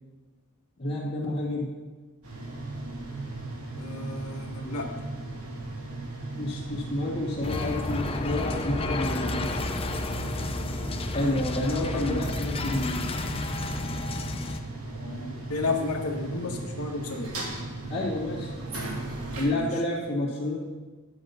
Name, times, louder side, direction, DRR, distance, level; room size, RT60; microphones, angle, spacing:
voice 1, 0.8-1.7 6.3-9.5 11.1-13.1 17.9-18.5 19.4-20.6, left 1 dB, 45° left, -7 dB, 2.2 m, -29 dB
sound 1, 2.2-19.4, right 2 dB, 75° right, 2.5 m, -37 dB
voice 2, 3.7-4.9 9.1-9.4 11.7-12.3 14.9-17.3 19.5-19.7, left 3 dB, 90° left, 1 dB, 1.8 m, -33 dB
sound 2, 7.4-14.6, left 2 dB, 25° left, 0.7 m, -31 dB
10.0 x 7.8 x 5.7 m, 1.3 s
head